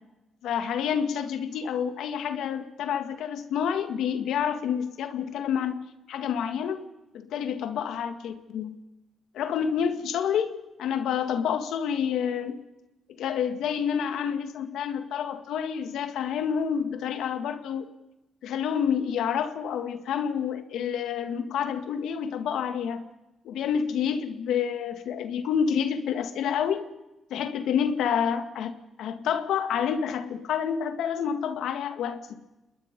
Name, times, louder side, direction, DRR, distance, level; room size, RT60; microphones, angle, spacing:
voice 1, 0.4-6.9 7.1-8.8 9.3-12.6 13.1-17.9 18.4-23.0 23.5-26.9 27.3-32.4, left 8 dB, 85° left, 8 dB, 1.9 m, -28 dB
27.5 x 20.5 x 5.4 m, 0.98 s
cardioid pair, 75°, 0 cm